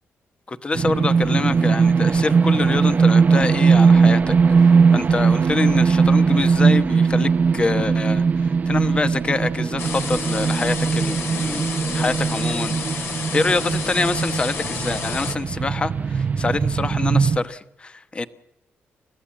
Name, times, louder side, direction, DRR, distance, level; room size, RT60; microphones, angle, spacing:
voice 1, 0.5-12.8 13.1-18.3, left 3 dB, 25° left, 11 dB, 1.0 m, -25 dB
sound 1, 0.7-17.4, right 5 dB, 35° right, 0.8 m, -19 dB
sound 2, 9.8-15.3, left 5 dB, 60° left, 2.5 m, -30 dB
29.5 x 14.5 x 7.4 m, 0.90 s
cardioid pair, 125°, 5 cm